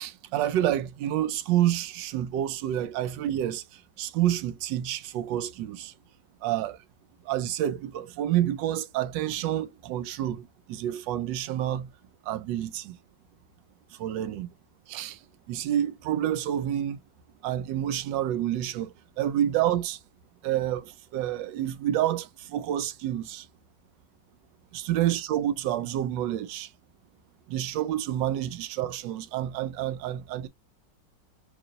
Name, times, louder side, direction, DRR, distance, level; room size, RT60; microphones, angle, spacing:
voice 1, 0.0-5.9 6.4-6.8 7.2-11.9 12.2-13.0 13.9-14.5 14.9-17.0 17.4-20.0 20.4-23.5 24.7-26.7 27.5-30.5, right 12 dB, 80° right, 1.3 m, -29 dB
3.1 x 3.0 x 3.8 m
omnidirectional pair, 2.0 m